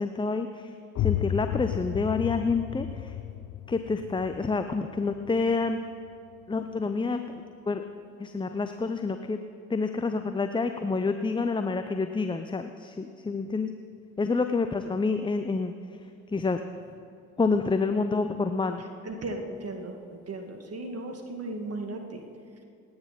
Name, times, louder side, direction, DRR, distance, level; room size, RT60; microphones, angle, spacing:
voice 1, 0.0-3.2 3.7-5.8 6.5-7.8 8.2-9.4 9.7-13.7 14.2-15.7 16.3-16.6 17.4-18.8, left 4 dB, 10° left, 8 dB, 0.7 m, -28 dB
sound 1, 1.0-6.5, left 12 dB, 45° left, 0.7 m, -33 dB
voice 2, 19.0-22.2, right 2 dB, 35° right, 4 dB, 2.1 m, -36 dB
28.0 x 9.6 x 4.3 m, 2.5 s
figure-of-eight pair, 45°, 40 cm